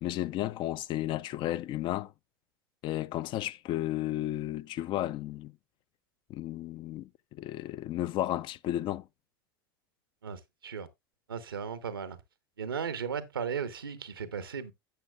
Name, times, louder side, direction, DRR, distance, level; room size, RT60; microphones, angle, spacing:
voice 1, 0.0-2.1 2.8-5.5 6.3-9.1, left 14 dB, 45° left, 0.4 m, -33 dB
voice 2, 10.2-10.9 11.3-12.2 12.6-14.7, right 6 dB, 90° right, 0.9 m, -36 dB
11.5 x 7.7 x 2.2 m
hypercardioid pair, 80°, 12 cm